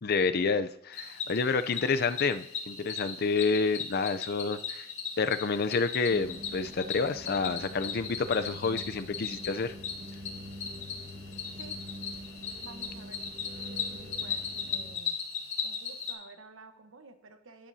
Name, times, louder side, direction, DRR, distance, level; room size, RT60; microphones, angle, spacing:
voice 1, 0.0-4.9 5.2-9.7, left 4 dB, 50° left, 11 dB, 0.5 m, -29 dB
Cricket, 0.9-16.1, left 6 dB, 70° left, 2.1 m, -38 dB
sound 1, 6.1-15.0, left 1 dB, 50° right, 1.5 m, -45 dB
voice 2, 12.6-13.2 13.9-15.2 15.6-17.7, right 3 dB, 75° right, 7 dB, 1.1 m, -51 dB
15.5 x 10.5 x 2.8 m, 0.77 s
head